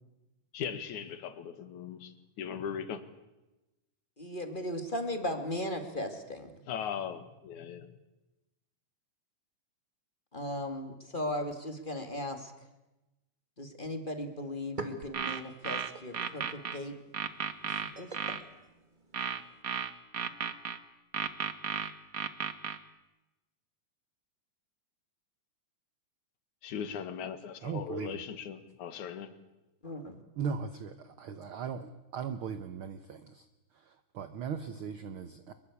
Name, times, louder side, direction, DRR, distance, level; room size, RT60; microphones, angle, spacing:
voice 1, 0.5-3.0 6.7-7.9 26.6-29.3, left 7 dB, 70° left, 3.0 m, -39 dB
voice 2, 4.2-6.6 10.3-12.5 13.6-16.9 17.6-18.1 29.8-30.2, left 1 dB, 20° left, 1.7 m, -37 dB
sound 1, 14.4-19.6, right 2 dB, 20° right, 1.8 m, -47 dB
sound 2, 15.0-16.8 17.1-18.4 19.1-20.8 21.1-22.8, right 7 dB, 90° right, 0.7 m, -34 dB
voice 3, 27.6-28.2 30.4-33.5 33.7-35.5, right 6 dB, 65° right, 1.3 m, -38 dB
23.5 x 23.0 x 8.4 m
omnidirectional pair, 3.6 m